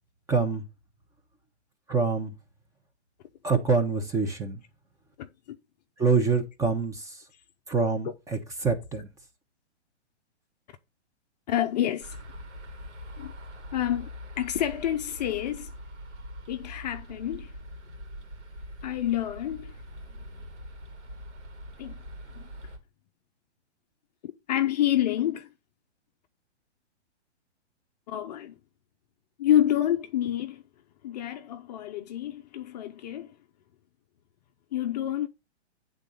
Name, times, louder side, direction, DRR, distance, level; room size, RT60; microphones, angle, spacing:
voice 1, 0.3-0.7 1.9-2.3 3.4-4.6 6.0-7.2 7.7-9.1, right 4 dB, 10° right, 0.8 m, -26 dB
voice 2, 11.5-12.2 13.2-13.3 13.7-14.1 14.4-15.7 16.5-17.5 18.8-19.7 21.8-22.0 22.4-22.5 24.2-25.5 28.1-28.6 29.4-30.6 31.0-33.3 34.7-35.3, left 11 dB, 40° left, 0.5 m, -28 dB
sound 1, 12.0-22.8, equal, 85° right, 2.6 m, -43 dB
8.8 x 3.8 x 5.4 m
hypercardioid pair, 140°, 34 cm